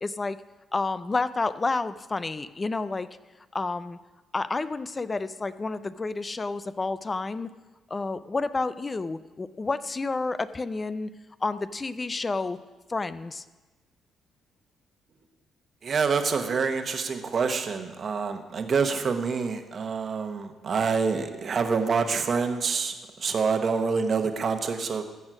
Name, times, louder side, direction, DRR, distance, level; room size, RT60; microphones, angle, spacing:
voice 1, 0.0-0.4 0.7-3.1 3.5-4.0 4.3-7.5 7.9-11.1 11.4-12.6 12.9-13.4, left 3 dB, 25° left, 14 dB, 0.4 m, -30 dB
voice 2, 15.8-22.9 23.2-25.0, right 5 dB, 50° right, 7 dB, 1.2 m, -26 dB
15.0 x 6.3 x 6.2 m, 1.2 s
cardioid pair, 90°, 0 cm